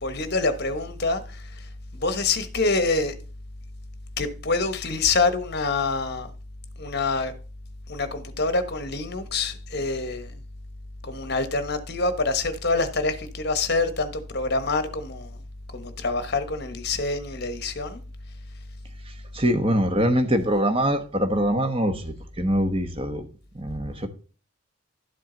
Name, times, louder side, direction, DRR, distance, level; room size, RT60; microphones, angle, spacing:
voice 1, 0.0-3.1 4.2-6.3 6.8-7.3 7.9-10.3 11.0-15.4 15.7-18.0, left 3 dB, 50° left, 1.2 m, -26 dB
voice 2, 19.0-23.3 23.5-24.1, equal, 25° right, 1.2 m, -24 dB
12.0 x 7.5 x 3.9 m
head